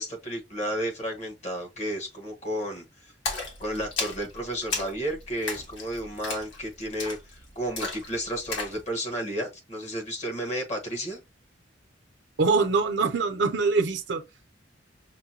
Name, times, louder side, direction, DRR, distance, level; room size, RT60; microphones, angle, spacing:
voice 1, 0.0-3.1 3.6-11.2, equal, 35° left, 1.3 m, -32 dB
Splash splatter, 3.3-8.8, left 3 dB, 85° left, 1.5 m, -35 dB
voice 2, 12.4-14.2, right 4 dB, 70° right, 0.7 m, -23 dB
5.8 x 2.2 x 2.8 m
head